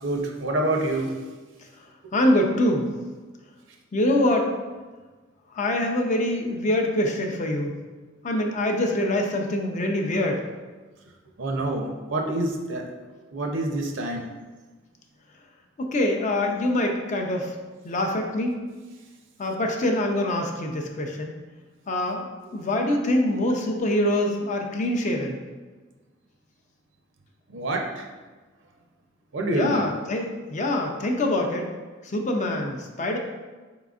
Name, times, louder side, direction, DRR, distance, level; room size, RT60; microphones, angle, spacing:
voice 1, 0.0-1.1 2.0-2.1 11.4-12.9 13.3-14.2 27.5-28.1 29.3-29.9, right 1 dB, 65° right, 2 dB, 0.6 m, -27 dB
voice 2, 2.1-2.9 3.9-4.5 5.5-7.8 8.2-10.4 15.8-17.6 17.8-18.6 19.4-21.4 21.9-22.3 22.5-25.4 29.5-31.7 32.0-33.2, left 1 dB, 40° left, 2 dB, 0.4 m, -24 dB
4.1 x 3.7 x 2.4 m, 1.3 s
head